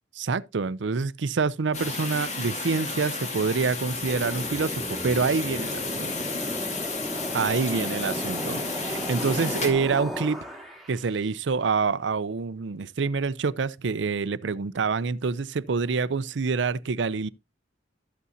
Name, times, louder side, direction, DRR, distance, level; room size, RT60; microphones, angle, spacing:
voice 1, 0.2-6.1 7.3-10.4 10.9-17.3, right 4 dB, 85° right, 0.5 m, -27 dB
sound 1, 1.7-9.7, left 3 dB, 40° left, 2.2 m, -32 dB
sound 2, 3.8-11.1, equal, ahead, 1.8 m, -35 dB
12.5 x 8.3 x 2.7 m
head